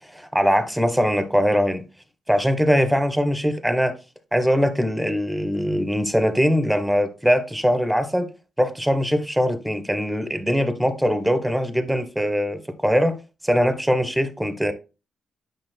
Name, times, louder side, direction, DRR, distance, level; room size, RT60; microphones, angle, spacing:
voice 1, 0.1-1.8 2.3-3.9 4.3-8.3 8.6-13.2 13.4-14.7, equal, 5° right, 1.2 m, -21 dB
8.9 x 5.4 x 2.2 m
hypercardioid pair, 40°, 0 cm